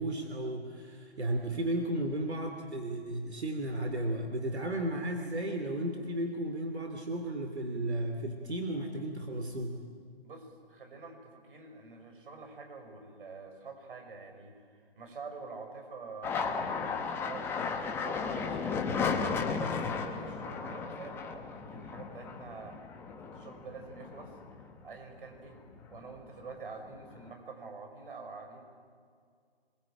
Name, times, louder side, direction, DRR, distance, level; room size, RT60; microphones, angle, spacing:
voice 1, 0.0-9.8, right 1 dB, 85° right, 5 dB, 3.0 m, -34 dB
voice 2, 10.2-19.0 19.5-22.8 23.0-25.6 25.9-28.6, right 4 dB, 55° right, 5 dB, 5.5 m, -47 dB
sound 1, 16.2-25.0 25.3-26.1 26.4-27.3, left 5 dB, 5° left, 1.0 m, -35 dB
25.5 x 22.0 x 8.8 m, 2.2 s
figure-of-eight pair, 150°, 32 cm